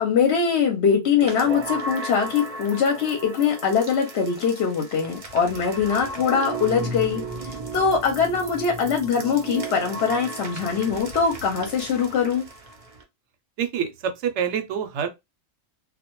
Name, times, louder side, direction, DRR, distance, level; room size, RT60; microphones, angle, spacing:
voice 1, 0.0-7.2 7.7-12.4, left 6 dB, 65° left, 0.8 m, -22 dB
sound 1, 1.1-13.0, right 2 dB, 45° right, 0.5 m, -35 dB
voice 2, 13.6-15.1, right 8 dB, 70° right, 0.8 m, -26 dB
2.2 x 2.1 x 2.9 m
omnidirectional pair, 1.4 m